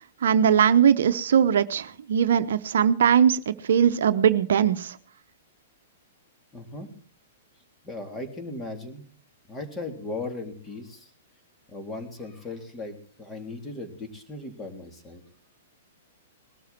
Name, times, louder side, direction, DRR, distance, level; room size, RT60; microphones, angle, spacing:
voice 1, 0.2-5.0, right 8 dB, 70° right, 11 dB, 0.8 m, -20 dB
voice 2, 6.5-6.9 7.8-9.0 9.5-11.1 11.7-15.2, left 2 dB, 15° left, 5 dB, 3.6 m, -37 dB
20.5 x 13.0 x 4.4 m, 0.41 s
hypercardioid pair, 115°, 0 cm